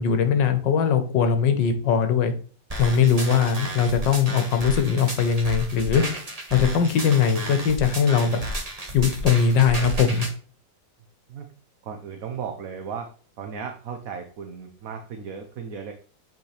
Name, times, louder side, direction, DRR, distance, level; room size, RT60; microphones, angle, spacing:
voice 1, 0.0-2.3 2.8-6.0 6.5-8.4 8.9-10.3, left 6 dB, 75° left, 8 dB, 1.7 m, -20 dB
sound 1, 2.7-10.3, right 1 dB, 25° right, 1.2 m, -33 dB
voice 2, 11.8-13.1 13.4-15.9, right 6 dB, 55° right, 4 dB, 1.1 m, -35 dB
8.1 x 4.5 x 3.3 m, 0.41 s
omnidirectional pair, 2.0 m